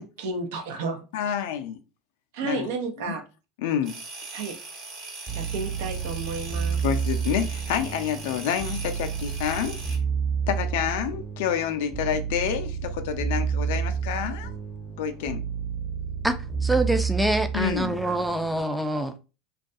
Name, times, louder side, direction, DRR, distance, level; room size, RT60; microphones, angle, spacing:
voice 1, 0.0-1.0 2.3-3.2 4.3-4.6 5.3-6.8, right 4 dB, 75° right, 0.6 m, -32 dB
voice 2, 1.1-1.8 2.4-2.7 3.1-3.2 3.6-4.0 6.8-9.8 10.5-14.5 15.0-15.4 17.5-18.0, left 9 dB, 75° left, 0.3 m, -28 dB
sound 1, 3.8-10.0, right 3 dB, 55° right, 1.0 m, -41 dB
sound 2, 5.3-18.6, right 6 dB, 30° right, 1.0 m, -30 dB
voice 3, 16.6-19.3, right 1 dB, 5° right, 0.4 m, -25 dB
2.3 x 2.2 x 2.6 m
hypercardioid pair, 100°, 0 cm